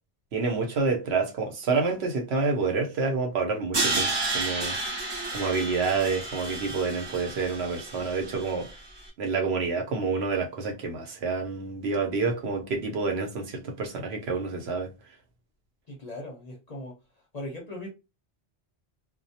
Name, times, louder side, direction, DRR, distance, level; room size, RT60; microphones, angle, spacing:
voice 1, 0.3-4.8 5.3-8.7 9.2-14.9, right 4 dB, 70° right, 0.9 m, -28 dB
Crash cymbal, 3.7-8.8, right 3 dB, 35° right, 0.4 m, -31 dB
voice 2, 15.9-16.9 17.3-17.9, left 1 dB, 45° left, 0.6 m, -38 dB
2.2 x 2.1 x 2.7 m
omnidirectional pair, 1.2 m